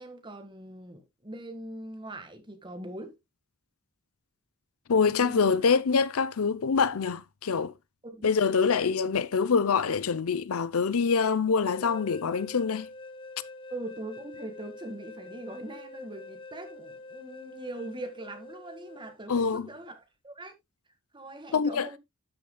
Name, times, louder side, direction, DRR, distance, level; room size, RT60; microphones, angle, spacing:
voice 1, 0.0-3.2 5.2-5.5 8.0-8.3 13.7-20.5 21.1-22.0, right 1 dB, 20° right, 1.7 m, -41 dB
voice 2, 4.9-7.7 8.2-12.9 19.3-19.7 21.5-21.9, left 5 dB, 75° left, 0.6 m, -25 dB
sound 1, 11.6-19.2, left 2 dB, 25° left, 0.7 m, -46 dB
12.0 x 6.9 x 2.2 m
head